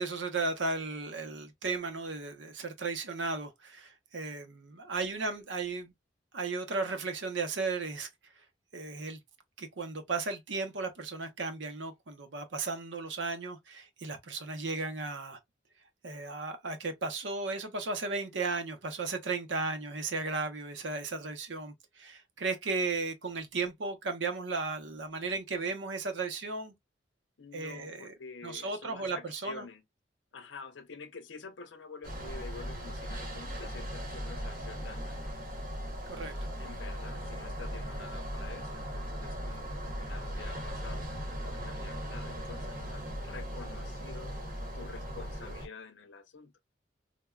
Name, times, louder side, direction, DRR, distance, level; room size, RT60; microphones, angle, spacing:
voice 1, 0.0-5.9 6.3-8.1 8.7-9.2 9.6-15.4 16.0-26.7 27.5-28.1 28.4-29.7 36.1-36.3, right 3 dB, 75° right, 0.7 m, -35 dB
voice 2, 27.4-29.8 30.3-35.4 36.6-44.4 44.7-46.5, left 4 dB, 80° left, 0.6 m, -48 dB
sound 1, 32.0-45.7, equal, 45° right, 0.9 m, -38 dB
3.3 x 2.2 x 2.3 m
head